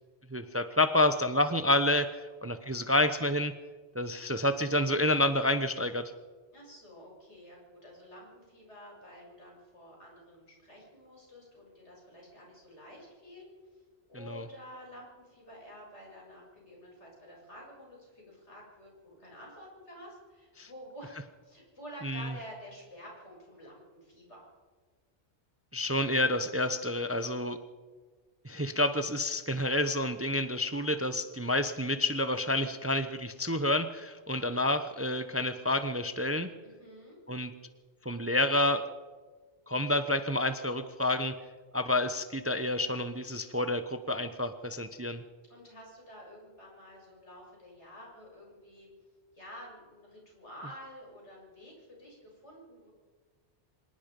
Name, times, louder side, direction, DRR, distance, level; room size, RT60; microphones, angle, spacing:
voice 1, 0.3-3.5 3.9-6.1 14.1-14.5 20.6-20.7 22.0-22.3 25.7-27.6 28.4-36.5 37.3-37.5 38.0-38.8 39.7-41.3 41.7-45.2, left 1 dB, 15° right, 10 dB, 0.7 m, -29 dB
voice 2, 6.5-13.5 14.1-24.5 36.6-37.2 45.5-48.9 49.3-52.9, equal, 80° left, -2 dB, 7.7 m, -50 dB
25.0 x 19.5 x 5.3 m, 1.4 s
omnidirectional pair, 1.2 m